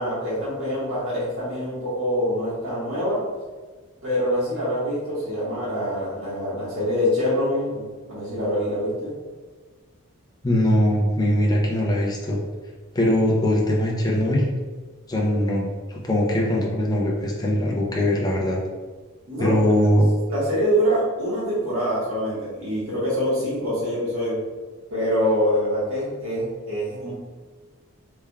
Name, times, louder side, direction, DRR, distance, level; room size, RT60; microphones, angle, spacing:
voice 1, 0.0-3.2 4.0-7.8 8.1-9.1 19.3-19.6 20.3-24.4 24.9-27.1, equal, 70° right, -10 dB, 1.5 m, -25 dB
voice 2, 10.4-12.4 12.9-14.4 15.1-18.6 19.4-20.1, left 1 dB, 15° left, -2 dB, 0.5 m, -21 dB
3.5 x 3.3 x 2.2 m, 1.4 s
head